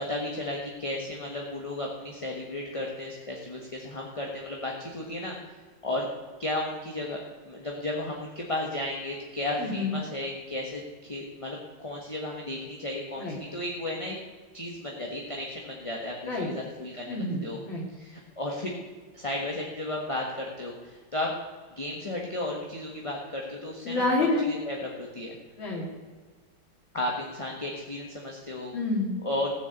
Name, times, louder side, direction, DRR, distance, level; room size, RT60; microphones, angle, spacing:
voice 1, 0.0-5.4 5.8-6.1 6.4-14.2 14.5-17.6 17.9-18.8 19.1-21.3 21.8-24.0 24.4-25.3 26.9-28.8 29.2-29.5, left 1 dB, 20° left, -1 dB, 1.2 m, -34 dB
voice 2, 9.6-9.9 13.2-13.4 16.3-16.5 17.1-17.8 23.8-24.5 25.6-25.9 28.7-29.1, left 2 dB, 75° left, -2 dB, 3.0 m, -28 dB
15.0 x 6.9 x 8.1 m, 1.4 s
omnidirectional pair, 2.2 m